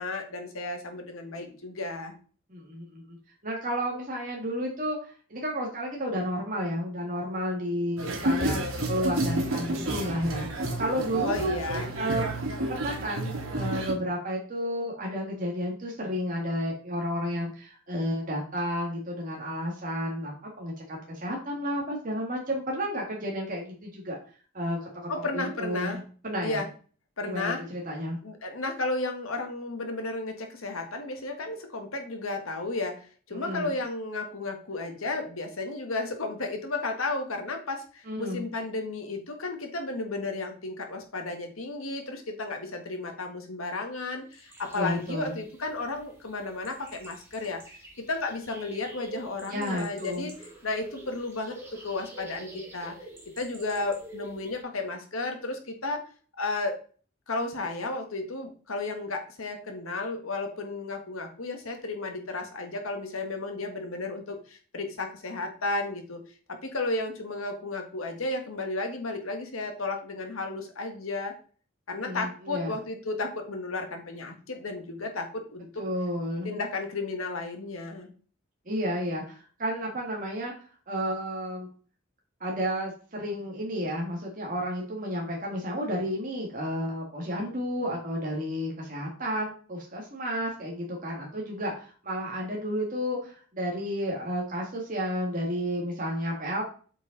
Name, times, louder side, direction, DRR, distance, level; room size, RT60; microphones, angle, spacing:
voice 1, 0.0-2.1 11.2-11.9 25.1-26.0 26.4-26.7 27.2-27.6 28.2-50.3 50.6-52.9 53.4-56.0 56.4-56.8 57.3-66.2 66.5-71.3 71.9-75.8 76.4-78.1, left 2 dB, 85° left, 4 dB, 1.6 m, -33 dB
voice 2, 2.5-3.2 3.4-11.6 11.9-12.3 12.5-24.2 24.5-26.6 27.2-28.2 33.3-33.7 38.1-38.4 44.7-45.4 49.5-50.3 72.0-72.7 75.8-76.5 78.7-80.5 80.9-81.7 82.4-96.6, equal, 40° right, -2 dB, 1.9 m, -32 dB
sound 1, 8.0-13.9, right 1 dB, 85° right, 2.5 m, -30 dB
sound 2, 44.3-54.6, right 2 dB, 10° right, 2.0 m, -48 dB
8.0 x 4.9 x 4.0 m, 0.40 s
head